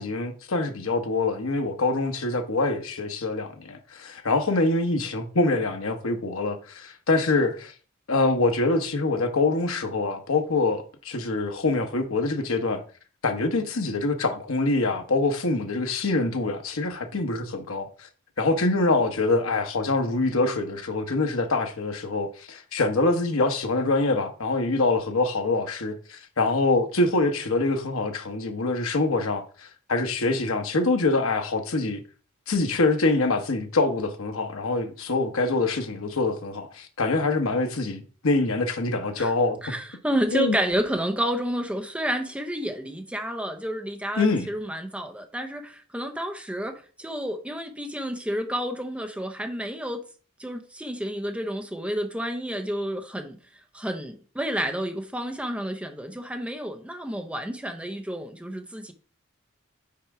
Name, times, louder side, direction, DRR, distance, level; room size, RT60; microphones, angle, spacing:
voice 1, 0.0-7.7 8.1-12.8 13.2-18.1 18.4-32.0 32.5-39.6 40.3-40.5 44.2-44.5, left 2 dB, 70° left, 1.0 m, -25 dB
voice 2, 39.6-50.0 50.4-53.4 53.7-58.9, equal, 5° right, 0.7 m, -30 dB
5.7 x 4.3 x 4.8 m
head